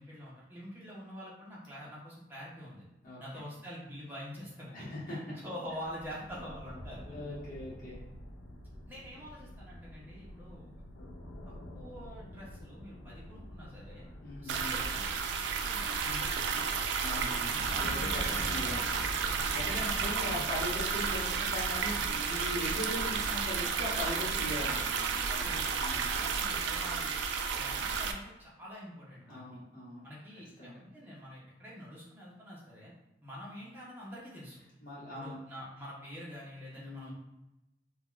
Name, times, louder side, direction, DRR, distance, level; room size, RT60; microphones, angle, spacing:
voice 1, 0.0-2.9 3.2-7.0 8.9-10.6 11.7-14.1 14.4-15.4 15.6-16.8 17.5-18.7 19.2-20.5 25.1-27.2 27.5-29.4 30.0-32.9 33.2-34.6 35.1-37.1, equal, 10° right, -7 dB, 0.6 m, -46 dB
voice 2, 4.7-5.2 7.1-8.0 14.2-14.8 17.0-17.9 18.4-18.9 19.5-24.9 25.7-26.1 29.3-30.0 30.6-30.8 34.8-35.4 36.7-37.1, left 1 dB, 50° left, -8 dB, 1.0 m, -40 dB
sound 1, 5.7-23.2, equal, 75° left, 0.4 m, -47 dB
sound 2, 14.5-28.1, right 5 dB, 75° right, 0.3 m, -32 dB
3.4 x 2.1 x 2.3 m, 0.93 s
head